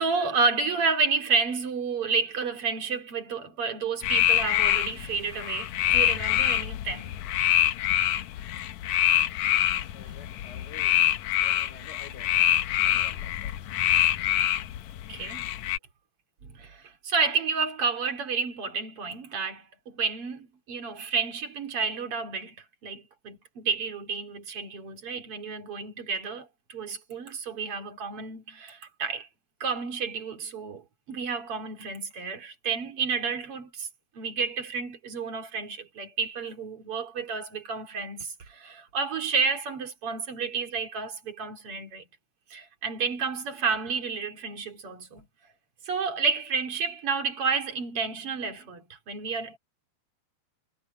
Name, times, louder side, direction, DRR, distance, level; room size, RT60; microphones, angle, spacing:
voice 1, 0.0-7.1 15.1-15.5 16.4-22.6 22.8-29.3 29.6-33.9 34.1-42.1 42.5-45.3 45.8-49.6, right 5 dB, 40° right, 3.1 m, -30 dB
sound 1, 4.0-15.8, left 11 dB, 85° left, 1.6 m, -25 dB
voice 2, 9.5-13.7, left 5 dB, 25° left, 4.5 m, -51 dB
omnidirectional pair, 4.4 m